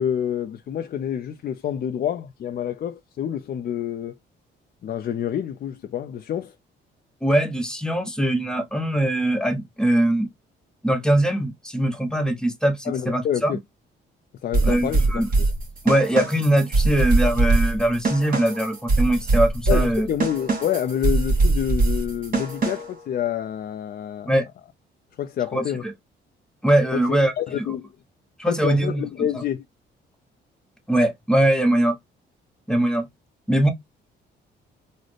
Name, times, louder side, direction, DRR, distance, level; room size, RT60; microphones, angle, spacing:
voice 1, 0.0-4.2 4.8-6.5 12.9-13.6 14.4-15.5 19.7-24.3 25.2-25.8 26.9-27.0 27.4-27.9 28.5-29.6, left 9 dB, 50° left, 0.4 m, -27 dB
voice 2, 7.2-10.3 10.8-13.6 14.6-15.3 15.8-20.1 24.3-24.5 25.5-25.9 26.6-27.7 28.4-29.0 30.9-32.0 32.7-33.1 33.5-33.7, right 1 dB, 5° left, 0.9 m, -21 dB
sound 1, 14.5-23.0, right 3 dB, 45° right, 1.6 m, -22 dB
3.9 x 2.0 x 3.2 m
cardioid pair, 90°, 20 cm